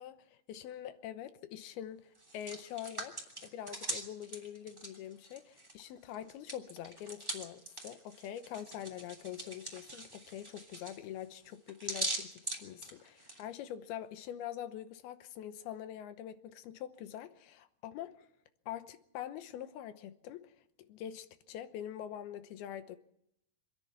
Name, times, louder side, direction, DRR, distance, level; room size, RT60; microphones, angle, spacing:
voice 1, 0.0-18.3 18.7-23.0, left 11 dB, 80° left, 2.8 m, -44 dB
Hands, 2.1-5.8 6.1-13.4, right 1 dB, 5° right, 2.3 m, -42 dB
26.5 x 10.5 x 9.6 m
omnidirectional pair, 4.7 m